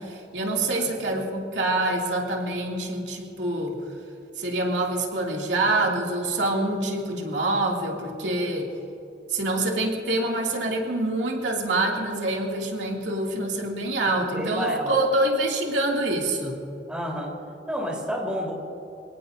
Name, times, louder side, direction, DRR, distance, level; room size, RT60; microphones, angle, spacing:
voice 1, 0.0-3.8 4.4-8.7 9.3-16.6, right 2 dB, 80° right, -1 dB, 2.7 m, -26 dB
voice 2, 14.1-15.0 16.9-17.3 17.7-18.5, equal, 5° right, -2 dB, 4.0 m, -30 dB
27.0 x 18.0 x 2.7 m, 2.9 s
head